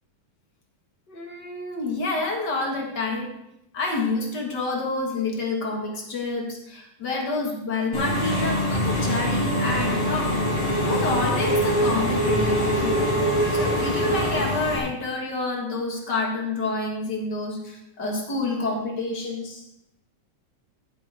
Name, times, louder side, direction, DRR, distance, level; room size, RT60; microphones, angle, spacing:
voice 1, 1.1-3.3 3.7-10.4 10.8-12.9 13.5-19.6, left 3 dB, 40° left, 1 dB, 2.1 m, -28 dB
Engine / Mechanisms, 7.9-14.8, equal, 55° left, 5.0 m, -23 dB
14.0 x 9.4 x 3.6 m, 0.81 s
omnidirectional pair, 3.3 m